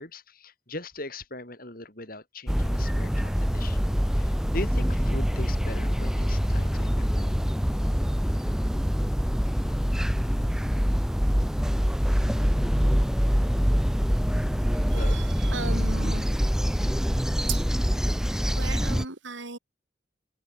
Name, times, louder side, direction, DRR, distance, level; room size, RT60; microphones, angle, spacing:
voice 1, 0.0-3.8 4.1-7.3 14.7-15.4, left 2 dB, 50° left, 6.4 m, -40 dB
sound 1, 2.5-19.0, equal, 5° right, 2.1 m, -25 dB
voice 2, 14.9-16.4 17.5-17.7 18.5-19.6, right 4 dB, 80° right, 2.9 m, -36 dB
head